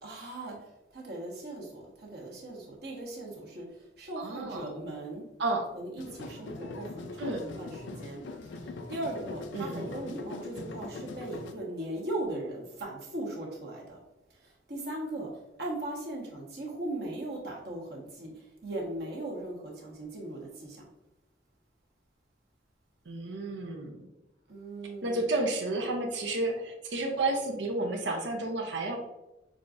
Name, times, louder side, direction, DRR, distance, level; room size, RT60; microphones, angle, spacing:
voice 1, 0.0-0.6 0.9-5.3 5.7-8.2 8.6-14.0 14.3-15.3 15.6-20.9 24.5-25.3, right 1 dB, 60° right, -3 dB, 1.1 m, -38 dB
voice 2, 4.2-4.6 5.4-5.7 7.2-7.4 9.5-9.9 23.1-24.0 25.0-29.0, right 2 dB, 85° right, 2 dB, 0.6 m, -31 dB
sound 1, 6.0-11.5, left 3 dB, 90° left, 0.4 m, -41 dB
6.3 x 2.4 x 2.6 m, 0.96 s
head